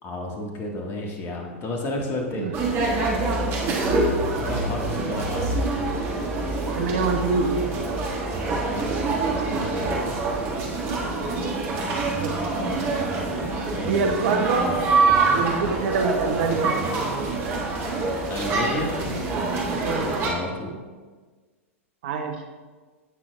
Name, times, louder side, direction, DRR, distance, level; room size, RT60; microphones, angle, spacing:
voice 1, 0.0-2.5 4.5-5.5 8.3-10.1 13.7-14.2 18.3-19.0 19.6-20.7, left 2 dB, 30° left, 1 dB, 1.6 m, -32 dB
sound 1, 2.5-20.3, right 3 dB, 30° right, 1.7 m, -25 dB
voice 2, 3.6-4.1 6.8-7.5 12.2-12.6 13.9-14.6 15.3-16.7 19.8-20.1 22.0-22.4, right 4 dB, 50° right, 5 dB, 0.9 m, -26 dB
16.0 x 6.2 x 2.3 m, 1.4 s
figure-of-eight pair, 100°, 7 cm